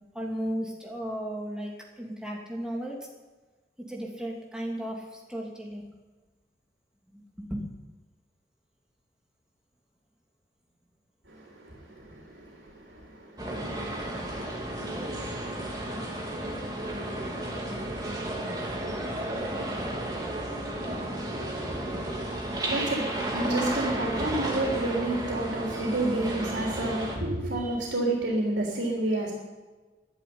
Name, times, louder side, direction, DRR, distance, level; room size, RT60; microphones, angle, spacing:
voice 1, 0.1-3.1 3.9-5.9 7.1-7.2 7.5-7.6, equal, 5° right, -2 dB, 2.7 m, -35 dB
voice 2, 11.3-22.0 22.6-29.3, right 2 dB, 85° right, -1 dB, 3.6 m, -33 dB
sound 1, 13.4-27.2, right 1 dB, 20° right, 2.7 m, -32 dB
12.5 x 11.0 x 9.7 m, 1.3 s
head